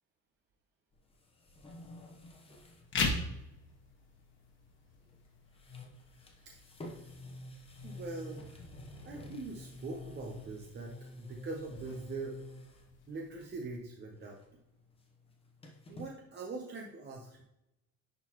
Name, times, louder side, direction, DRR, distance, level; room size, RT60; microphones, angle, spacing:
sound 1, 0.9-2.9 3.2-3.3 5.0-5.3 5.5-12.9 13.3-13.7 14.0-16.1, left 1 dB, 15° left, 1.0 m, -49 dB
sound 2, 2.8-13.8, left 3 dB, 30° left, 1.3 m, -43 dB
voice 1, 7.8-8.6 9.0-12.4 13.1-14.4 15.9-17.4, right 3 dB, 30° right, 0 dB, 0.7 m, -42 dB
10.5 x 4.0 x 3.0 m, 0.86 s
cardioid pair, 145°, 37 cm